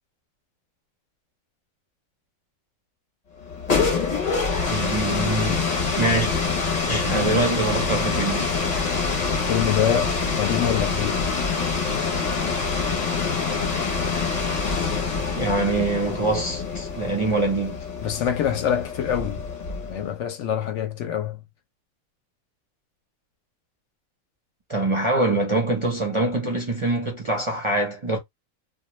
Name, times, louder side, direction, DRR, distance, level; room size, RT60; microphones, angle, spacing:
sound 1, 3.4-20.1, left 4 dB, 40° left, 0.7 m, -25 dB
voice 1, 4.7-5.6 6.0-6.3 6.9-8.5 15.3-17.8 24.7-28.2, right 2 dB, 35° right, 0.5 m, -24 dB
voice 2, 9.3-11.3 18.0-19.4 19.8-21.4, left 9 dB, 70° left, 0.8 m, -25 dB
2.2 x 2.2 x 3.0 m
omnidirectional pair, 1.4 m